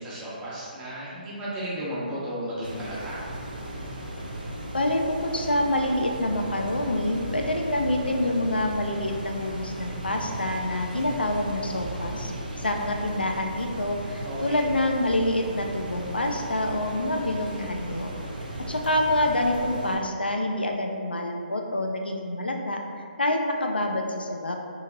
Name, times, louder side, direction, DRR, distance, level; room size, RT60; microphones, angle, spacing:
voice 1, 0.0-3.2 14.2-14.6, equal, 15° right, -9 dB, 0.8 m, -34 dB
sound 1, 2.6-20.0, right 1 dB, 65° right, 0.6 m, -36 dB
voice 2, 4.7-12.3 12.6-18.1 18.7-24.6, left 1 dB, 85° left, 2 dB, 0.3 m, -27 dB
2.8 x 2.8 x 2.5 m, 2.2 s
figure-of-eight pair, 135°, 5 cm